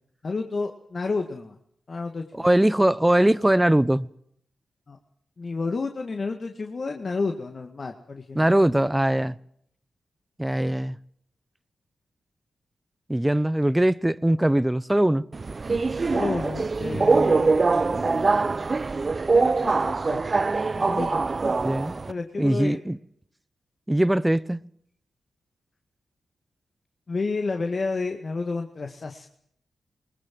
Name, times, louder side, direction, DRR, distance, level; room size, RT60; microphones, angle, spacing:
voice 1, 0.2-1.6 1.9-2.2 4.9-5.0 5.4-8.5 16.1-17.6 17.9-18.5 19.3-20.2 20.7-21.2 22.1-22.8 27.1-29.3, left 3 dB, 45° left, 2.0 m, -30 dB
voice 2, 2.3-4.1 8.3-9.4 10.4-11.0 13.1-15.2 21.6-21.9 22.4-23.0 23.9-24.6, right 1 dB, 10° right, 0.9 m, -21 dB
Subway metro underground, 15.3-22.1, right 4 dB, 40° right, 0.8 m, -23 dB
20.5 x 20.5 x 7.7 m
cardioid pair, 60°, 0 cm